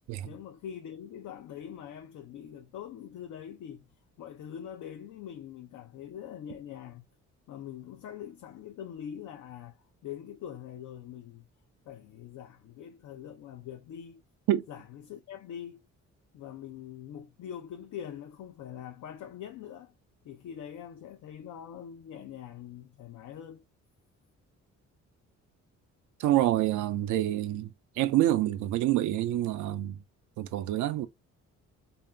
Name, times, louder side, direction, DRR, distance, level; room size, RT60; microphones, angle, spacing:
voice 1, 0.2-3.9 4.2-7.1 7.5-11.5 11.9-14.2 14.7-15.8 16.3-19.9 20.2-23.6, left 9 dB, 75° left, 0.6 m, -43 dB
voice 2, 26.2-30.0 30.4-31.1, right 13 dB, 80° right, 0.5 m, -27 dB
3.6 x 2.6 x 3.2 m
cardioid pair, 90°, 30 cm